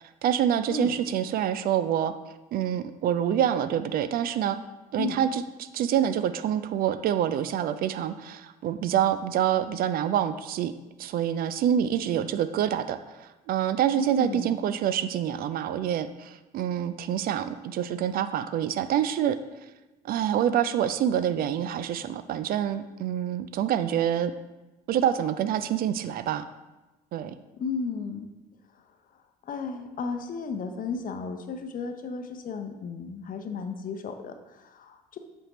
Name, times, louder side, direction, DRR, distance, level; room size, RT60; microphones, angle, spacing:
voice 1, 0.0-2.1 2.5-4.6 4.9-10.7 11.0-19.4 20.0-24.3 24.9-26.5 27.1-27.3, right 10 dB, 45° right, 12 dB, 0.4 m, -26 dB
voice 2, 14.0-14.5 27.6-28.3 29.5-35.2, left 5 dB, 45° left, 7 dB, 0.7 m, -33 dB
7.7 x 4.4 x 3.1 m, 1.1 s
figure-of-eight pair, 50°, 20 cm